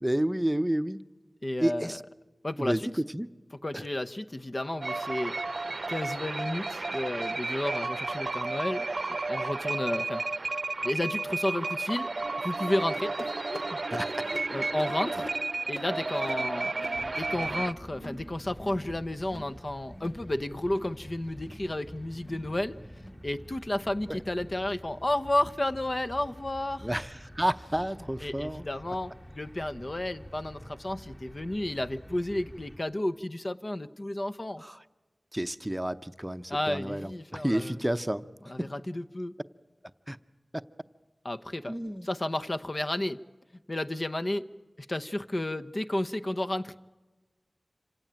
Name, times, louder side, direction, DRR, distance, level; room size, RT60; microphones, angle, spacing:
voice 1, 0.0-1.0 1.6-2.0 2.6-3.3 3.7-3.8 13.9-14.1 24.1-24.2 26.8-28.6 34.6-34.8 35.3-38.3 38.6-38.7 40.1-40.2 40.5-40.6 41.7-42.1, right 1 dB, 10° right, 11 dB, 0.8 m, -30 dB
voice 2, 1.4-2.0 2.4-2.9 3.6-5.3 5.9-8.9 9.3-10.2 10.8-12.1 12.4-13.3 13.7-13.8 14.5-15.3 15.7-16.7 17.2-22.7 23.2-26.9 28.2-34.6 36.5-37.8 38.4-39.3 41.2-41.7 42.0-43.2 43.7-44.4 44.8-46.8, left 1 dB, 45° left, 10 dB, 0.8 m, -32 dB
sound 1, 4.8-17.7, right 3 dB, 65° right, 0.7 m, -32 dB
sound 2, 13.2-18.2 18.5-18.9 19.2-19.5 19.9-20.2 20.6-20.9 21.3-21.7 22.1-22.4 22.9-23.2 23.8-24.0 24.6-24.8 25.5-25.6 26.3-26.4, left 1 dB, 75° left, 3.3 m, -45 dB
sound 3, 16.9-32.8, equal, 30° left, 4.2 m, -48 dB
26.5 x 17.0 x 8.9 m, 1.2 s
wide cardioid pair, 50°, 0 cm